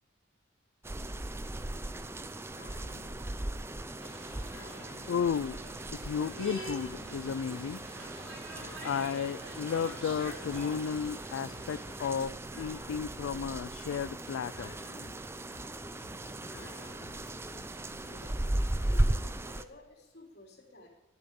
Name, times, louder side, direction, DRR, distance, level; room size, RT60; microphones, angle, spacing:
sound 1, 0.8-19.6, right 1 dB, 10° right, 0.4 m, -37 dB
sound 2, 2.5-18.5, left 3 dB, 90° left, 1.1 m, -55 dB
sound 3, 4.0-12.3, right 1 dB, 85° right, 4.7 m, -47 dB
voice 1, 5.1-5.6 6.0-7.8 8.8-14.7, left 7 dB, 70° left, 15 dB, 0.3 m, -33 dB
voice 2, 17.9-18.4 18.8-20.9, left 1 dB, 50° left, -1 dB, 3.4 m, -53 dB
11.5 x 10.5 x 5.3 m, 1.0 s
head